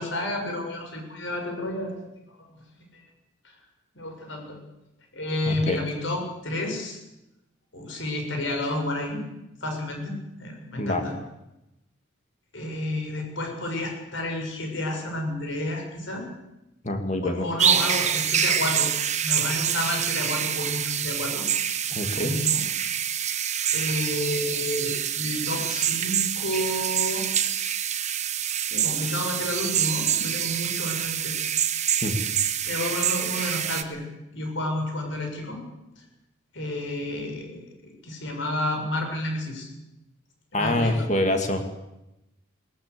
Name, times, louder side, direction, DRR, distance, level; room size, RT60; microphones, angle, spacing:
voice 1, 0.0-1.9 2.9-3.0 3.9-4.6 5.1-7.0 7.7-9.2 9.6-11.1 12.5-16.3 17.2-18.9 19.2-21.4 22.2-23.1 23.7-27.3 28.7-31.4 32.7-34.0 34.3-35.6 36.5-39.7 40.5-41.1, left 1 dB, 60° left, 3 dB, 7.2 m, -30 dB
voice 2, 5.5-5.8 10.8-11.0 16.8-17.5 21.9-22.4 32.0-32.2 40.5-41.6, left 1 dB, 35° left, 5 dB, 2.6 m, -25 dB
sound 1, 17.6-33.8, right 9 dB, 35° right, 1.0 m, -26 dB
20.5 x 19.0 x 8.7 m, 0.92 s
head